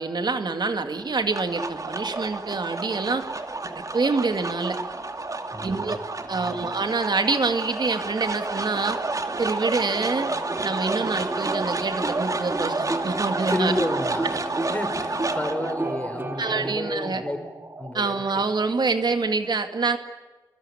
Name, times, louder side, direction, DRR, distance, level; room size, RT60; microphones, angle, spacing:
voice 1, 0.0-3.2 3.6-4.8 5.6-6.0 6.3-9.0 9.4-10.3 10.6-13.7 16.4-17.2 17.9-20.0, right 4 dB, 75° right, 7 dB, 2.2 m, -26 dB
sound 1, 1.0-19.3, right 3 dB, 50° right, 2.5 m, -31 dB
voice 2, 5.5-5.9 6.3-6.7 13.5-14.4 14.7-17.4 17.8-18.2, left 1 dB, 20° left, 8 dB, 4.8 m, -31 dB
sound 2, 10.0-16.7, right 2 dB, 30° right, 0.8 m, -35 dB
sound 3, 10.1-17.5, left 4 dB, 90° left, 3.0 m, -43 dB
24.5 x 24.5 x 9.9 m, 1.2 s
wide cardioid pair, 85°, 7 cm